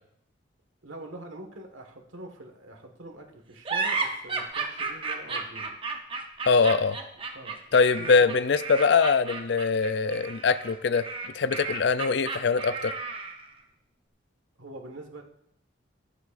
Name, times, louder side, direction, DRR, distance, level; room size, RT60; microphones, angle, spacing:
voice 1, 0.8-5.7 7.3-8.4 14.6-15.2, right 1 dB, 90° right, 3 dB, 1.6 m, -44 dB
sound 1, 3.7-13.5, right 4 dB, 25° right, 0.9 m, -33 dB
voice 2, 6.5-7.0 7.7-11.0 11.3-12.9, left 5 dB, 60° left, 15 dB, 0.4 m, -22 dB
14.0 x 11.0 x 2.5 m, 0.76 s
head